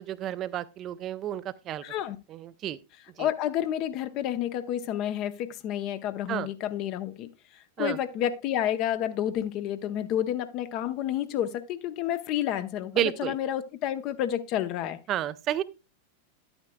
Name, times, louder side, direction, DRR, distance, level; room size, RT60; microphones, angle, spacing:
voice 1, 0.0-1.8 2.3-2.8 3.2-3.3 6.3-6.5 7.8-8.0 13.0-13.3 15.1-15.6, right 12 dB, 30° right, 0.5 m, -31 dB
voice 2, 1.8-2.2 3.2-15.0, left 11 dB, 40° left, 0.7 m, -30 dB
11.5 x 8.9 x 2.2 m
figure-of-eight pair, 90°, 0 cm